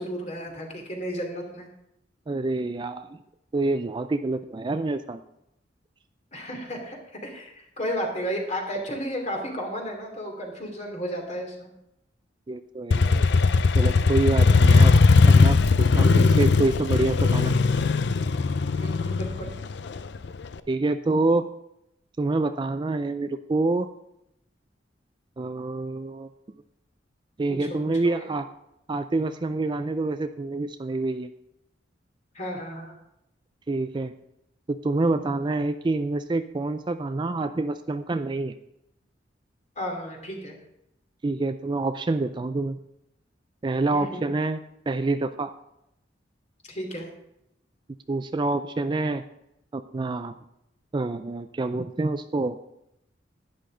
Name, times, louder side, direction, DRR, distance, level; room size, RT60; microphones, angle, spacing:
voice 1, 0.0-1.7 6.3-11.7 18.8-19.5 27.5-27.7 28.0-28.3 32.3-32.9 39.8-40.6 43.9-44.2 46.7-47.1, equal, 40° left, 2 dB, 2.7 m, -33 dB
voice 2, 2.3-3.2 3.5-5.2 12.5-13.2 13.8-15.0 15.3-17.6 20.7-21.5 22.2-23.9 25.4-26.3 27.4-28.5 28.9-31.3 33.7-34.1 34.7-38.6 41.2-42.8 43.6-44.6 44.9-45.5 48.1-49.2 49.7-50.3 50.9-52.6, right 2 dB, 25° right, 10 dB, 0.4 m, -27 dB
Motorcycle, 12.9-20.5, left 4 dB, 65° left, 0.5 m, -19 dB
11.5 x 10.5 x 3.8 m, 0.81 s
head